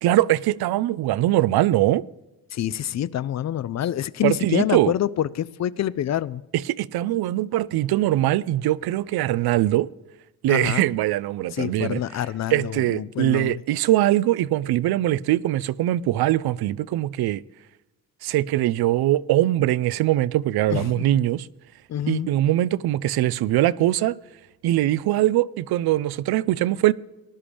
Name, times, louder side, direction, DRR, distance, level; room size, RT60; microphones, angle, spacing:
voice 1, 0.0-2.0 4.2-4.9 6.5-9.9 10.4-12.0 12.5-17.4 18.2-21.5 22.1-24.1 24.6-26.9, right 14 dB, 80° right, 0.5 m, -22 dB
voice 2, 2.5-6.4 10.5-10.8 11.5-13.6 20.7-21.0 21.9-22.3, left 11 dB, 45° left, 0.5 m, -26 dB
19.5 x 11.5 x 3.4 m
cardioid pair, 110°, 37 cm